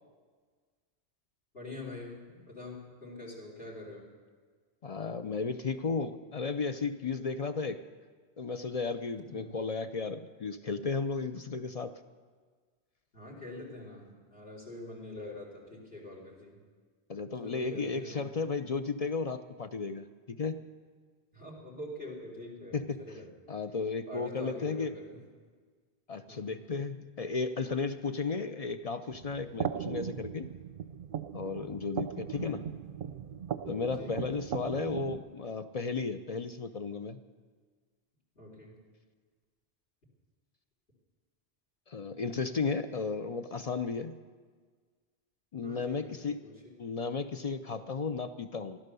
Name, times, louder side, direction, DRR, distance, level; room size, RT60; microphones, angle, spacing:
voice 1, 1.5-4.1 9.3-9.6 13.1-16.6 17.4-18.2 21.3-23.3 24.1-25.2 26.3-26.5 32.3-32.7 33.9-34.3 38.4-38.8 45.6-46.6, left 2 dB, 65° left, -4 dB, 3.8 m, -45 dB
voice 2, 4.8-7.8 8.4-12.0 17.1-20.6 22.7-23.0 23.5-24.9 26.1-30.5 31.3-32.6 33.7-37.2 41.9-44.2 45.5-46.4 46.8-48.8, left 4 dB, 45° left, 10 dB, 0.5 m, -34 dB
sound 1, 29.1-35.2, right 9 dB, 60° right, 0.7 m, -38 dB
16.0 x 12.0 x 6.8 m, 1.6 s
omnidirectional pair, 1.1 m